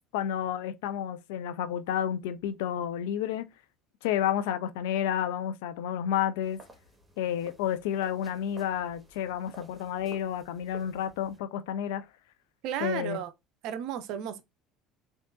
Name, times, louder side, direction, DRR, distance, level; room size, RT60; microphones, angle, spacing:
voice 1, 0.1-3.5 4.0-6.6 7.2-12.0 12.8-13.2, left 10 dB, 75° left, 0.3 m, -30 dB
sound 1, 6.4-11.4, right 2 dB, 15° right, 1.2 m, -53 dB
voice 2, 12.6-13.3 13.6-14.4, right 9 dB, 60° right, 0.5 m, -33 dB
3.6 x 2.4 x 2.4 m
hypercardioid pair, 70°, 0 cm